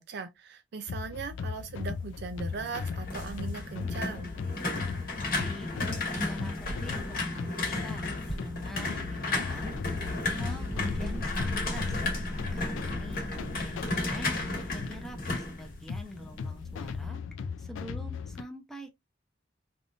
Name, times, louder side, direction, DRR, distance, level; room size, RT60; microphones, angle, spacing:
voice 1, 0.0-4.3, right 5 dB, 60° right, 0.4 m, -39 dB
sound 1, 0.9-18.4, left 5 dB, 85° left, 0.3 m, -38 dB
sound 2, 2.4-16.4 16.7-17.1, left 2 dB, 50° left, 1.6 m, -34 dB
voice 2, 5.3-5.7 6.1-9.7 10.2-12.0 12.5-13.3 13.5-14.4 14.7-17.2 17.6-18.9, equal, ahead, 0.6 m, -44 dB
sound 3, 9.6-15.7, equal, 75° right, 0.8 m, -42 dB
3.4 x 2.5 x 2.4 m
head